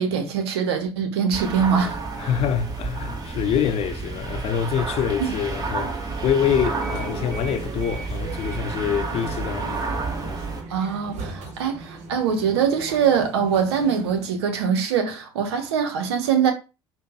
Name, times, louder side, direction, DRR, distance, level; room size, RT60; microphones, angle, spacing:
voice 1, 0.0-2.4 5.2-5.3 10.7-16.5, right 7 dB, 80° right, 0.7 m, -23 dB
sound 1, 1.3-10.6, right 3 dB, 30° right, 1.0 m, -30 dB
voice 2, 2.2-5.9 6.2-10.4, left 8 dB, 45° left, 0.5 m, -25 dB
sound 2, 6.7-14.3, right 3 dB, 55° right, 0.9 m, -39 dB
5.0 x 2.2 x 2.8 m
hypercardioid pair, 60°, 14 cm